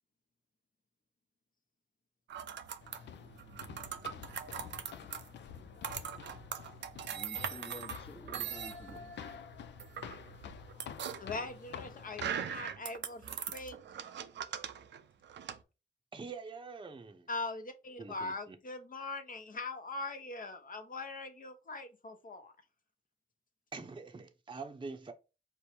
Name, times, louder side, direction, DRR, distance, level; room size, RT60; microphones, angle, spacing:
sound 1, 2.3-15.6, right 8 dB, 80° right, 0.5 m, -41 dB
sound 2, 2.8-12.6, left 8 dB, 75° left, 0.5 m, -49 dB
voice 1, 7.1-9.1, left 3 dB, 30° left, 0.9 m, -50 dB
voice 2, 11.2-13.8 17.3-22.5, left 3 dB, 50° left, 0.9 m, -41 dB
voice 3, 16.1-17.3 18.0-18.6 23.7-25.1, right 4 dB, 25° right, 0.7 m, -45 dB
5.3 x 2.1 x 4.4 m
cardioid pair, 60°, 18 cm